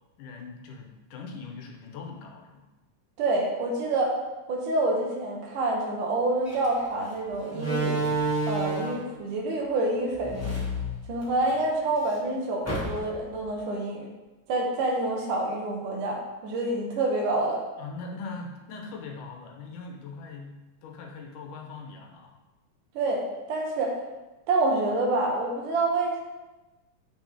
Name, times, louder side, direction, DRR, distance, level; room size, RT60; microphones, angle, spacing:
voice 1, 0.2-2.7 17.8-22.4, left 4 dB, 80° left, 2 dB, 2.5 m, -41 dB
voice 2, 3.2-4.2 4.5-8.1 8.4-10.5 11.1-14.1 14.5-17.6 22.9-24.0 24.5-26.2, right 2 dB, 80° right, 0 dB, 2.9 m, -27 dB
Slam, 6.4-6.6 7.5-9.1 10.1-11.5 11.9-12.0 12.6-13.3, right 2 dB, 10° left, 0.9 m, -29 dB
9.0 x 6.4 x 3.6 m, 1.1 s
omnidirectional pair, 3.6 m